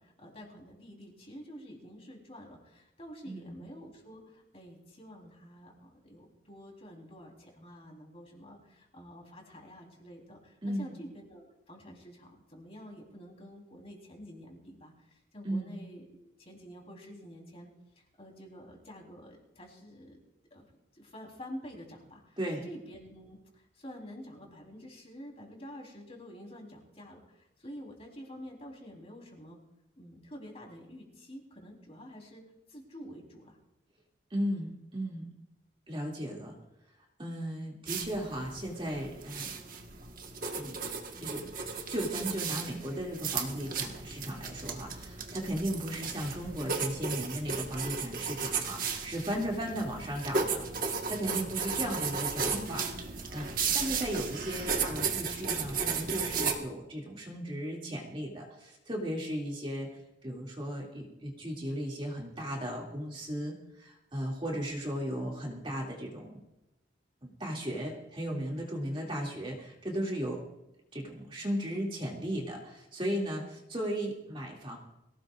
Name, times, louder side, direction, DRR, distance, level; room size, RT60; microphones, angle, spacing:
voice 1, 0.0-17.7 18.0-20.2 20.5-20.7 20.9-22.4 22.6-29.6 30.0-32.4 32.7-33.6 52.7-53.0, equal, 30° left, 0 dB, 3.8 m, -48 dB
voice 2, 3.2-3.6 10.6-11.0 15.4-15.8 22.4-22.7 34.3-35.3 35.9-36.5 37.2-39.6 40.6-40.8 41.2-41.5 41.9-52.9 53.3-66.4 67.2-70.4 70.9-74.8, equal, 25° right, -2 dB, 2.5 m, -36 dB
sound 1, 37.9-56.6, right 5 dB, 45° right, 1.5 m, -35 dB
23.5 x 17.0 x 2.5 m, 0.90 s
head